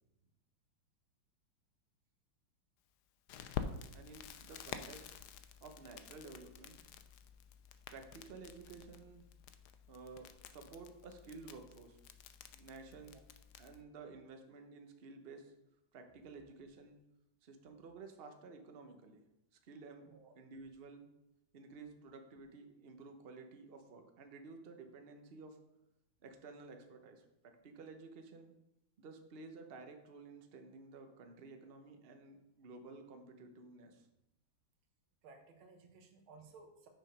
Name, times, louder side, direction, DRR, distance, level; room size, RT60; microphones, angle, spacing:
Crackle, 3.3-13.8, left 8 dB, 75° left, 0.9 m, -49 dB
voice 1, 3.9-5.1 5.6-6.8 7.9-9.3 9.9-12.0 12.5-13.2 13.6-15.5 15.9-17.0 17.4-19.2 19.6-20.0 20.3-21.1 21.5-25.6 26.2-27.2 27.6-28.6 29.0-34.1, right 4 dB, 60° right, 5 dB, 0.6 m, -53 dB
voice 2, 35.2-36.9, right 4 dB, 75° right, 4 dB, 1.9 m, -58 dB
6.3 x 6.3 x 5.2 m, 0.88 s
omnidirectional pair, 2.3 m